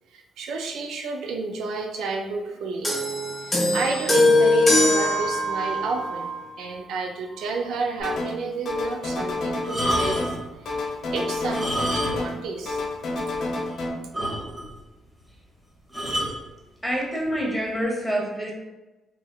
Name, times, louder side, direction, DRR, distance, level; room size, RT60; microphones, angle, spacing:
voice 1, 0.1-2.9 3.4-10.4 10.6-12.8, right 3 dB, 80° right, 2 dB, 0.4 m, -30 dB
sound 1, 2.8-6.4 7.3-7.5, left 1 dB, 20° left, 1.1 m, -21 dB
sound 2, 8.0-8.4 8.6-10.4 10.6-12.4 12.7-13.9, left 2 dB, 65° left, 0.8 m, -29 dB
sound 3, 9.6-10.5 11.4-12.4 12.7-12.8 13.3-13.4 13.7-13.8 14.1-14.8 15.9-16.4 17.2-17.5, equal, 15° right, 1.2 m, -28 dB
voice 2, 16.8-18.5, equal, ahead, -3 dB, 0.9 m, -26 dB
3.1 x 2.7 x 2.3 m, 1.1 s
cardioid pair, 90°, 0 cm